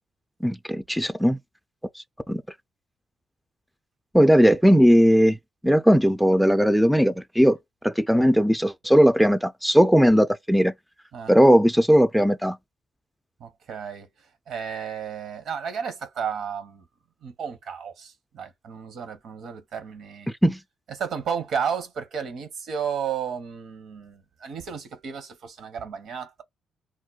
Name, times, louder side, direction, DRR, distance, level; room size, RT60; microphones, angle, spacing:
voice 1, 0.4-1.4 1.9-2.4 4.1-5.4 5.6-7.6 7.8-10.7 11.3-12.6 20.4-20.6, equal, ahead, 0.3 m, -18 dB
voice 2, 13.4-16.9 17.2-20.3 21.0-26.4, right 7 dB, 70° right, 0.8 m, -33 dB
2.3 x 2.1 x 3.8 m
cardioid pair, 90°, 0 cm